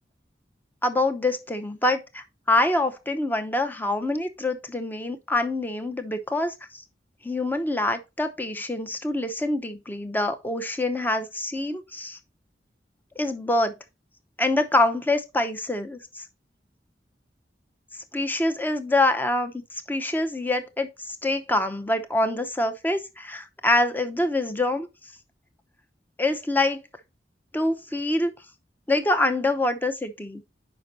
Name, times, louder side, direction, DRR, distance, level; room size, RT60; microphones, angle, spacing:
voice 1, 0.8-6.8 7.2-12.2 13.2-13.7 14.4-16.3 18.1-24.9 26.2-26.8 27.5-28.3 28.9-30.4, left 2 dB, 10° left, 0.7 m, -25 dB
6.4 x 5.3 x 4.1 m
head